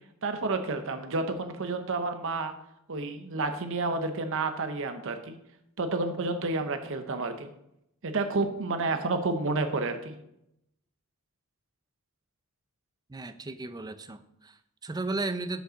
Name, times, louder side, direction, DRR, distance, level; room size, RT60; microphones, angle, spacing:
voice 1, 0.2-2.5 2.9-5.4 5.8-7.5 8.0-10.2, right 3 dB, 65° right, 7 dB, 0.8 m, -30 dB
voice 2, 13.1-15.6, right 3 dB, 20° right, 11 dB, 0.5 m, -35 dB
6.5 x 5.4 x 6.3 m, 0.81 s
head